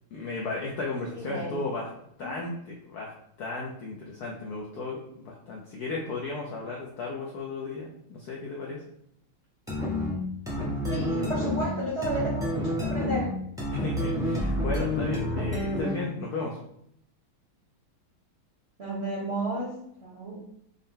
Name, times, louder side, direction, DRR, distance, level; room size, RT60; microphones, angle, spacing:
voice 1, 0.1-1.9 2.2-3.1 3.4-8.8 13.7-16.6, left 3 dB, 75° left, -2 dB, 0.9 m, -35 dB
voice 2, 1.1-1.6 10.9-13.3 18.8-19.7 20.0-20.4, right 2 dB, 45° right, -5 dB, 0.9 m, -32 dB
sound 1, 9.7-16.1, left 1 dB, 5° right, 0.4 m, -29 dB
5.5 x 2.1 x 3.6 m, 0.73 s
omnidirectional pair, 2.3 m